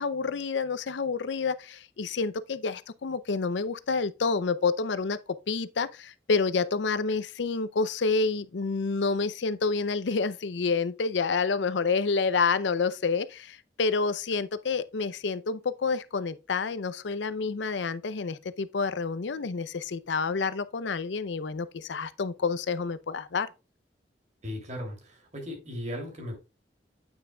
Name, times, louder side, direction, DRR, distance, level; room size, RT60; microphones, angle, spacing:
voice 1, 0.0-5.2 5.5-23.5, left 4 dB, 85° left, 0.6 m, -28 dB
voice 2, 24.4-26.4, left 1 dB, 40° right, 2.9 m, -37 dB
8.9 x 6.1 x 2.3 m
head